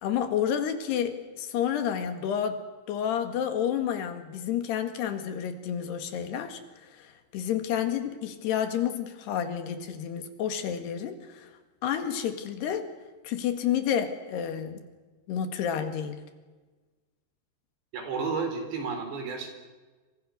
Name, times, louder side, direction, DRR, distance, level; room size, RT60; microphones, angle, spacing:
voice 1, 0.0-2.6 2.9-11.5 11.8-12.9 13.2-14.8 15.3-16.2, left 9 dB, 75° left, 8 dB, 3.9 m, -30 dB
voice 2, 17.9-19.5, right 4 dB, 90° right, 5 dB, 6.4 m, -32 dB
27.5 x 24.5 x 6.6 m, 1.3 s
omnidirectional pair, 4.8 m